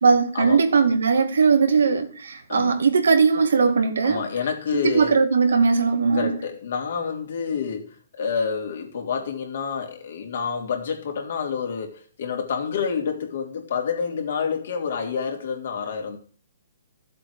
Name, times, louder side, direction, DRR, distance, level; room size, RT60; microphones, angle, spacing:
voice 1, 0.0-4.2 4.8-6.3, right 5 dB, 80° right, 2.3 m, -19 dB
voice 2, 2.5-2.8 4.0-5.1 6.1-16.2, left 6 dB, 50° left, 3.3 m, -28 dB
13.5 x 7.6 x 4.9 m
hypercardioid pair, 170°, 0 cm